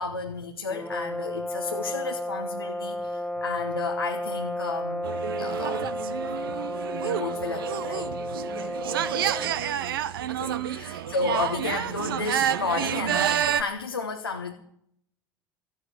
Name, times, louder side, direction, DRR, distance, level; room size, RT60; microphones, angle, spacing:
voice 1, 0.0-5.9 6.9-8.1 10.3-13.3 13.6-14.5, left 4 dB, 85° left, 4 dB, 1.0 m, -32 dB
sound 1, 0.7-9.6, left 1 dB, 10° left, 1.1 m, -33 dB
sound 2, 5.0-13.6, right 10 dB, 70° right, 0.7 m, -29 dB
voice 2, 8.4-9.9 10.9-11.1, right 1 dB, 90° right, -2 dB, 4.2 m, -47 dB
14.5 x 11.0 x 6.5 m, 0.67 s
figure-of-eight pair, 65°, 12 cm